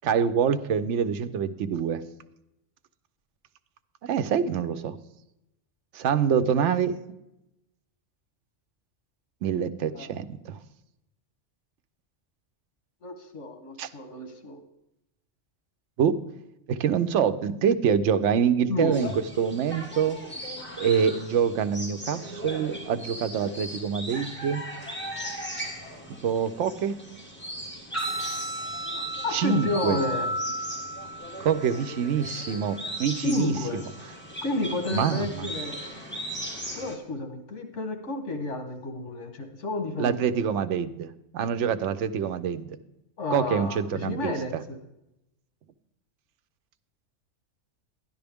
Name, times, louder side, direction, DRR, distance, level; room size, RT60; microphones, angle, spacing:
voice 1, 0.0-2.0 4.0-5.0 5.9-7.0 9.4-10.6 13.8-13.9 16.0-16.1 16.7-20.2 20.8-24.6 26.1-27.0 29.3-30.0 31.4-33.8 34.9-35.5 40.0-42.8 43.3-44.6, right 7 dB, 80° right, 11 dB, 0.9 m, -26 dB
voice 2, 6.1-6.5 9.9-10.1 13.0-14.6 18.7-19.1 29.2-30.3 33.2-34.1 34.4-35.8 36.7-40.3 43.2-44.8, left 2 dB, 80° left, 6 dB, 1.5 m, -31 dB
sound 1, 18.9-37.0, equal, 10° left, 1.6 m, -38 dB
sound 2, 27.9-35.9, right 1 dB, 35° left, 3.7 m, -37 dB
12.0 x 10.5 x 3.5 m, 0.88 s
omnidirectional pair, 1.2 m